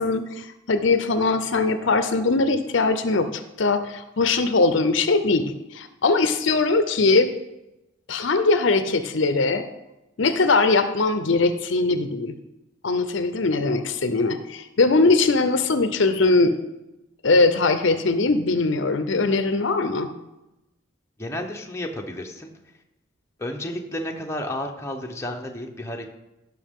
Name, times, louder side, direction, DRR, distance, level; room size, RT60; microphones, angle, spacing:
voice 1, 0.0-7.3 8.1-9.7 10.2-12.3 12.8-16.6 17.2-20.1, left 3 dB, 65° left, 10 dB, 0.6 m, -21 dB
voice 2, 21.2-22.5 23.4-26.1, left 1 dB, 15° left, 1 dB, 0.8 m, -32 dB
15.0 x 6.1 x 3.7 m, 0.97 s
head